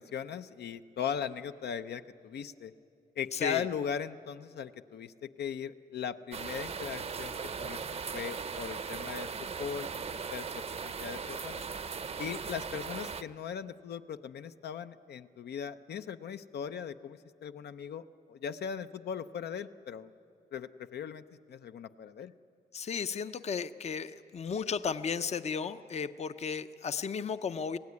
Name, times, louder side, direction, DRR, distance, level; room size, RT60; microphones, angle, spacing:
voice 1, 0.0-2.7 3.2-7.8 8.1-11.6 12.2-20.1 20.5-22.3, left 8 dB, 80° left, 10 dB, 0.7 m, -39 dB
voice 2, 3.3-3.7 22.7-27.8, left 6 dB, 40° left, 11 dB, 0.6 m, -34 dB
sound 1, 6.3-13.2, right 5 dB, 40° right, 0.6 m, -38 dB
25.5 x 17.0 x 9.6 m, 2.6 s
wide cardioid pair, 130°, 17 cm